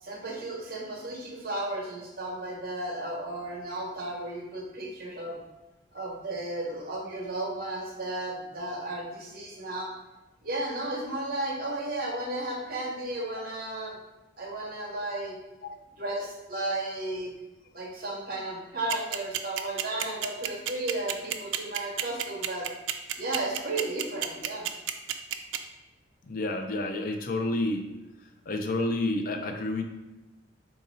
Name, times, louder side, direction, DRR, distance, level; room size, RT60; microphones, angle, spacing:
voice 1, 0.0-5.4 5.9-9.9 10.4-14.0 14.4-15.4 16.0-17.3 17.7-22.7 23.2-24.7, right 2 dB, 50° right, -2 dB, 1.0 m, -34 dB
sound 1, 18.9-25.6, right 13 dB, 80° right, 0.3 m, -29 dB
voice 2, 26.3-27.9 28.5-29.8, left 2 dB, 50° left, 5 dB, 0.4 m, -29 dB
3.7 x 2.7 x 4.1 m, 1.0 s
head